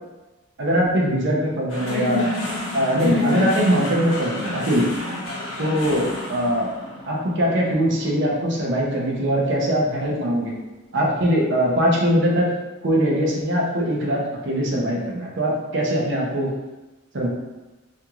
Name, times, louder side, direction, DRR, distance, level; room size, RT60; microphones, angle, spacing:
voice 1, 0.6-2.2 2.7-4.9 5.6-6.7 7.1-10.5 10.9-12.5 12.8-16.5 17.1-17.3, equal, 55° right, -2 dB, 0.6 m, -21 dB
sound 1, 1.7-10.1, left 2 dB, 65° left, 0.6 m, -29 dB
2.5 x 2.3 x 2.9 m, 1.1 s
head